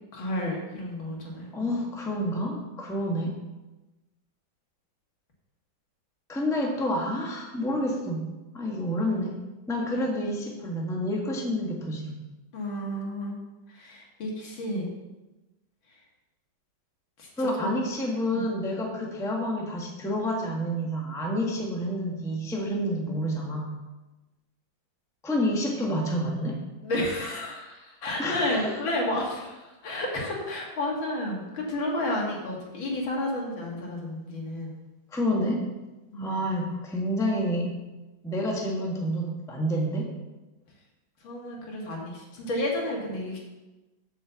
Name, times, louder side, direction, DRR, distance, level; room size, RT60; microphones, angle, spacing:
voice 1, 0.1-1.8 12.5-13.4 13.7-14.9 17.2-17.8 18.3-18.5 26.8-34.7 36.1-36.3 41.2-43.4, left 1 dB, 75° left, -1 dB, 2.7 m, -31 dB
voice 2, 1.5-3.3 6.3-8.2 8.5-9.4 9.7-12.2 17.4-23.7 25.2-26.6 28.2-28.8 35.1-35.6 36.2-37.7 38.2-40.1, equal, ahead, -1 dB, 1.0 m, -28 dB
8.0 x 5.6 x 6.9 m, 1.1 s
omnidirectional pair, 2.2 m